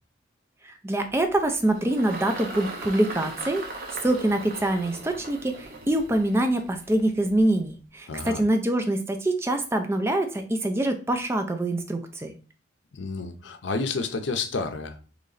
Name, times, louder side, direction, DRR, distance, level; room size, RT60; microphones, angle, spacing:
voice 1, 0.6-12.3, right 1 dB, 15° right, 0.4 m, -25 dB
Engine, 1.1-7.7, right 2 dB, 55° right, 0.8 m, -39 dB
voice 2, 8.1-8.4 12.9-15.1, left 4 dB, 75° left, 0.6 m, -30 dB
3.8 x 3.1 x 3.9 m
head